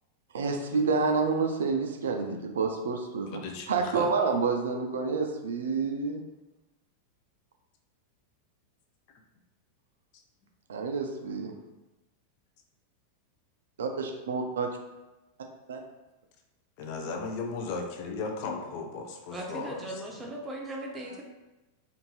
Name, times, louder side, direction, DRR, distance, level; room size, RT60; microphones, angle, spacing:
voice 1, 0.3-3.4 3.7-6.2 10.7-11.5 13.8-14.7 15.7-15.8, right 4 dB, 65° right, 3 dB, 0.3 m, -28 dB
voice 2, 3.3-4.1 16.8-20.3, left 4 dB, 45° left, 2 dB, 0.4 m, -36 dB
voice 3, 19.3-21.2, right 1 dB, 15° right, 0 dB, 0.6 m, -38 dB
2.6 x 2.5 x 3.0 m, 1.1 s
figure-of-eight pair, 90°, 0 cm